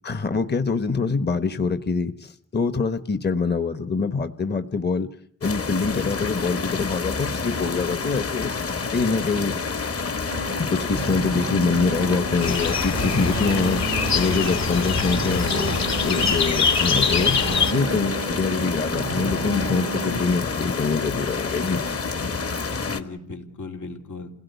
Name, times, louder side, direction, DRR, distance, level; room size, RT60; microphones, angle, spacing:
voice 1, 0.0-5.1 5.4-8.5 8.9-9.6 10.6-13.8 14.1-17.4 17.7-21.8, left 4 dB, 35° left, 10 dB, 1.1 m, -25 dB
sound 1, 5.4-23.0, left 4 dB, 50° left, 1.9 m, -28 dB
sound 2, 10.3-20.2, right 8 dB, 85° right, 0.9 m, -34 dB
voice 2, 12.0-12.9 22.8-24.3, left 3 dB, 90° left, 2 dB, 3.4 m, -36 dB
sound 3, 12.4-17.7, left 5 dB, 65° left, 2.5 m, -24 dB
28.5 x 17.0 x 8.2 m, 0.68 s
wide cardioid pair, 125°, 29 cm